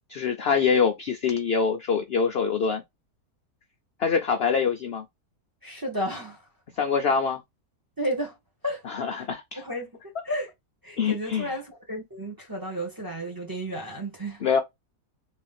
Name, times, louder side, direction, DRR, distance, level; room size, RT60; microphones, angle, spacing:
voice 1, 0.1-2.8 4.0-5.0 6.8-7.4 8.9-9.6 11.0-11.5 14.4-14.6, left 6 dB, 60° left, 0.6 m, -24 dB
voice 2, 5.6-6.4 8.0-8.3 8.6-9.3 9.5-10.5 10.8-14.6, equal, 15° right, 1.2 m, -33 dB
3.6 x 3.1 x 3.4 m
omnidirectional pair, 1.7 m